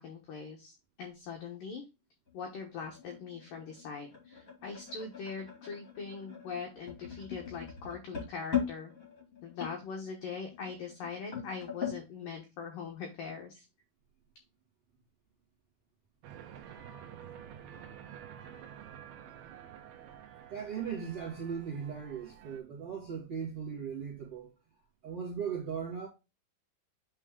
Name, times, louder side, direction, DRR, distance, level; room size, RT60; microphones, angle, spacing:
voice 1, 0.0-1.8 2.3-8.9 9.4-13.7, left 5 dB, 85° left, 1.9 m, -42 dB
sound 1, 2.3-12.0, left 8 dB, 50° left, 1.0 m, -40 dB
sound 2, 16.2-22.6, right 9 dB, 75° right, 2.3 m, -50 dB
voice 2, 20.5-24.5 25.0-26.1, right 7 dB, 55° right, 1.6 m, -38 dB
8.9 x 3.2 x 3.6 m
omnidirectional pair, 5.6 m